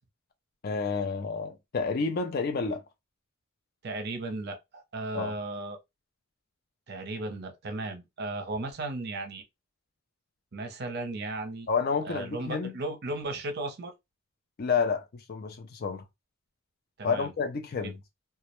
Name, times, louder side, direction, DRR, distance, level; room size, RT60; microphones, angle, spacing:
voice 1, 0.6-2.8 5.1-5.3 11.7-12.7 14.6-16.0 17.0-18.0, left 5 dB, 45° left, 0.4 m, -30 dB
voice 2, 3.8-5.8 6.9-9.4 10.5-11.7 12.0-13.9 17.0-17.3 17.8-17.9, right 2 dB, 50° right, 0.5 m, -35 dB
2.2 x 2.0 x 2.9 m
head